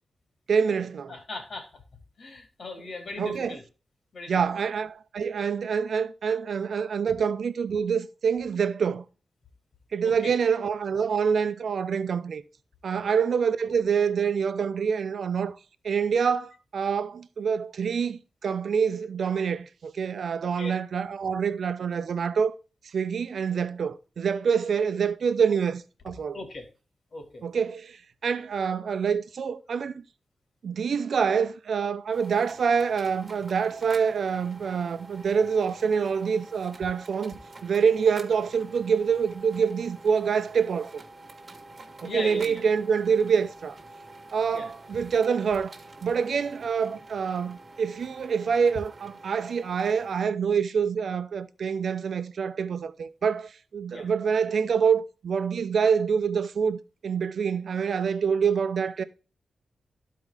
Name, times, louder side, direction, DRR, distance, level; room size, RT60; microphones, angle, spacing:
voice 1, 0.5-1.1 3.2-3.6 4.3-9.0 9.9-12.4 12.8-15.6 15.8-22.5 22.9-26.4 27.4-30.0 30.6-41.0 42.0-43.8 44.3-45.7 46.0-59.0, right 6 dB, 75° right, 0.7 m, -26 dB
voice 2, 1.1-1.8 2.2-3.6 4.1-4.4 10.0-10.3 13.1-13.2 20.5-20.7 26.3-26.7 27.1-27.4 42.0-42.6 44.5-45.0 53.9-54.1, left 2 dB, 60° left, 2.8 m, -39 dB
sound 1, 32.1-50.3, right 2 dB, 40° right, 1.5 m, -48 dB
12.0 x 4.7 x 3.5 m
cardioid pair, 90°, 0 cm